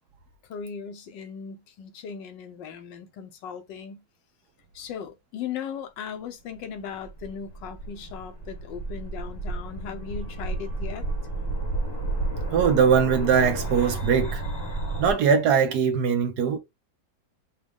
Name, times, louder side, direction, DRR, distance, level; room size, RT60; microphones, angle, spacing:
voice 1, 0.5-4.0 4.7-11.0, left 7 dB, 90° left, 1.5 m, -38 dB
sound 1, 6.8-15.1, right 2 dB, 20° left, 0.7 m, -31 dB
voice 2, 12.5-14.4 15.0-16.6, right 7 dB, 70° right, 1.2 m, -21 dB
5.1 x 2.4 x 3.4 m
omnidirectional pair, 1.9 m